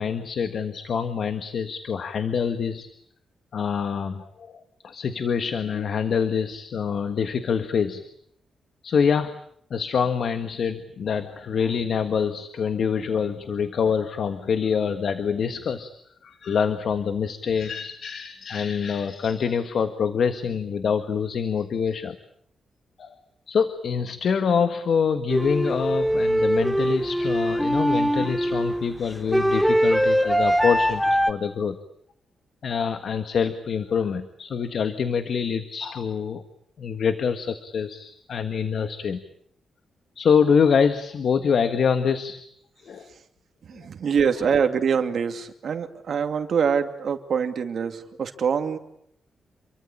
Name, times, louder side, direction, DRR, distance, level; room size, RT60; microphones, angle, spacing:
voice 1, 0.0-2.9 3.5-8.0 8.8-9.3 9.7-15.9 16.2-22.2 23.0-23.1 23.5-31.8 32.6-36.4 36.8-39.2 40.1-42.4 42.8-43.1, left 6 dB, 55° left, 10 dB, 1.6 m, -25 dB
sound 1, 25.3-31.3, equal, ahead, 1.2 m, -22 dB
voice 2, 43.6-48.8, right 6 dB, 50° right, 6 dB, 2.6 m, -24 dB
28.0 x 23.5 x 8.7 m, 0.70 s
wide cardioid pair, 165°, 0 cm